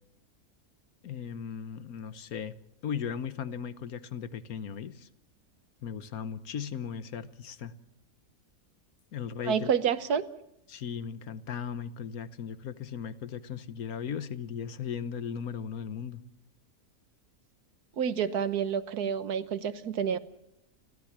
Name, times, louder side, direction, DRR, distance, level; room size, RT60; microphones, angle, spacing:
voice 1, 1.0-2.5 2.8-5.1 5.8-7.7 9.1-9.7 10.7-16.2, left 7 dB, 70° left, 1.4 m, -37 dB
voice 2, 9.4-10.2 18.0-20.2, right 7 dB, 80° right, 1.6 m, -28 dB
29.5 x 13.5 x 7.4 m
omnidirectional pair, 1.6 m